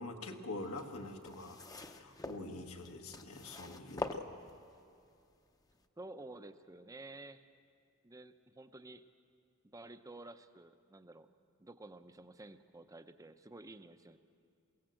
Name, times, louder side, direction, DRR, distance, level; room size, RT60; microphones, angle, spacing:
voice 1, 0.0-4.3, left 2 dB, 80° left, 3 dB, 1.6 m, -45 dB
sound 1, 0.6-4.9 5.6-5.7, left 2 dB, 15° left, 0.7 m, -44 dB
voice 2, 6.0-7.5 8.0-9.0 9.6-11.3 11.6-14.2, right 2 dB, 15° right, 10 dB, 0.6 m, -52 dB
22.0 x 17.0 x 7.7 m, 2.5 s
head